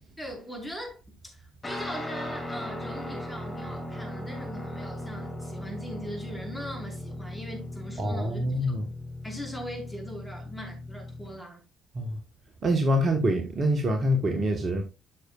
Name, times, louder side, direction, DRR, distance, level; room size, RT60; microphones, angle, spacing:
voice 1, 0.2-8.5 9.2-11.6, equal, 5° left, 5.1 m, -40 dB
Guitar, 1.6-11.4, left 1 dB, 25° left, 4.3 m, -38 dB
voice 2, 8.0-8.8 11.9-12.1 12.6-14.8, equal, 45° right, 1.6 m, -25 dB
13.0 x 6.8 x 2.5 m
figure-of-eight pair, 45°, 0 cm